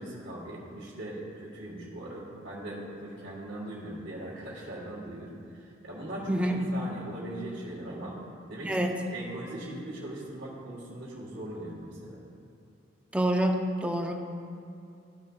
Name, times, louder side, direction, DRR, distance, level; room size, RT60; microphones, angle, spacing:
voice 1, 0.0-8.2 8.5-12.2, right 1 dB, 65° right, -10 dB, 1.6 m, -40 dB
voice 2, 6.3-6.7 8.6-9.0 13.1-14.1, right 1 dB, 5° right, 2 dB, 0.5 m, -27 dB
14.0 x 6.5 x 2.4 m, 2.6 s
head